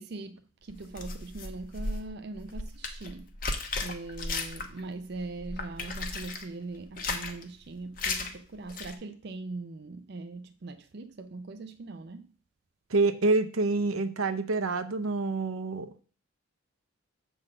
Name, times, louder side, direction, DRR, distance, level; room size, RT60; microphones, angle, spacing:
voice 1, 0.0-3.3 3.8-12.3, right 3 dB, 50° right, 0.5 m, -41 dB
sound 1, 0.7-4.9 5.2-6.4 6.8-7.4 8.0-8.3 8.7-8.9, left 3 dB, 40° left, 1.0 m, -35 dB
voice 2, 12.9-15.9, right 3 dB, 85° right, 0.8 m, -27 dB
7.8 x 3.9 x 6.3 m
head